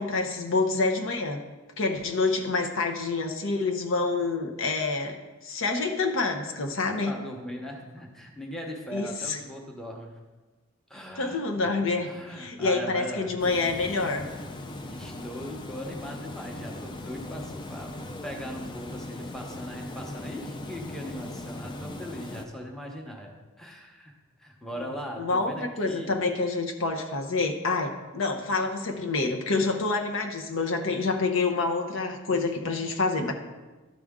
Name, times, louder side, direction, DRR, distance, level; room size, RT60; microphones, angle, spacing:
voice 1, 0.0-1.4 1.8-5.2 5.4-7.1 8.9-9.4 11.2-12.1 12.4-14.3 25.2-33.3, left 3 dB, 60° left, 4 dB, 0.8 m, -27 dB
voice 2, 7.1-10.1 10.9-11.7 12.0-13.3 14.9-18.0 18.2-24.1 24.4-26.1, equal, ahead, 0 dB, 0.9 m, -39 dB
Water, 13.4-22.5, left 1 dB, 20° left, 0.4 m, -39 dB
12.5 x 5.0 x 3.6 m, 1.2 s
head